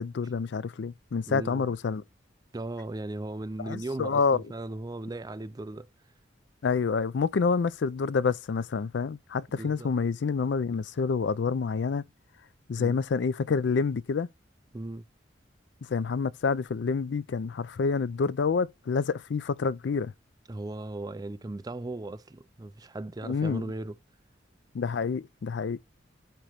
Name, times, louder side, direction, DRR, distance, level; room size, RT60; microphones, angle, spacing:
voice 1, 0.0-2.0 3.6-4.4 6.6-12.0 12.7-14.3 15.9-20.1 23.2-23.6 24.7-25.8, left 5 dB, 65° left, 0.4 m, -28 dB
voice 2, 1.3-1.7 2.5-5.9 9.5-9.9 12.8-13.0 14.7-15.1 20.5-24.0, right 2 dB, 20° right, 0.4 m, -37 dB
8.9 x 3.0 x 5.0 m
head